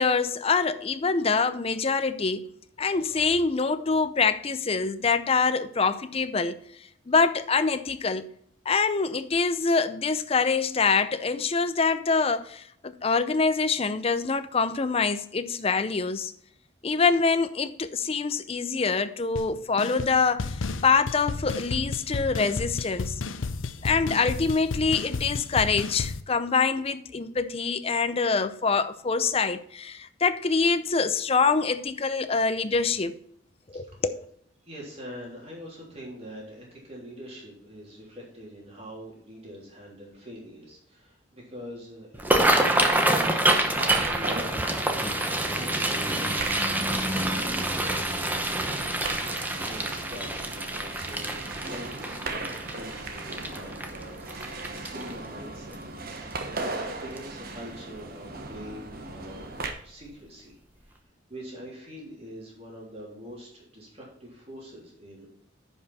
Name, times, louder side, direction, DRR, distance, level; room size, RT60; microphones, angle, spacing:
voice 1, 0.0-2.5 2.8-6.6 7.1-8.3 8.7-16.3 16.8-20.6 20.8-23.2 23.8-33.2 33.7-34.2, left 4 dB, 30° left, 0.5 m, -25 dB
voice 2, 2.9-3.2 34.6-44.6 45.2-54.2 54.5-55.8 56.4-61.0 61.3-65.3, equal, 30° right, 3.3 m, -44 dB
sound 1, 19.4-19.5 19.8-20.1 20.4-26.2, left 4 dB, 85° left, 0.6 m, -32 dB
sound 2, 42.1-55.3 55.7-56.0 56.3-56.8 57.2-57.3 58.5-58.7 59.1-59.2 59.7-59.8, right 1 dB, 10° right, 0.9 m, -27 dB
sound 3, 43.5-59.7, right 3 dB, 50° right, 1.1 m, -38 dB
10.5 x 5.4 x 4.1 m
head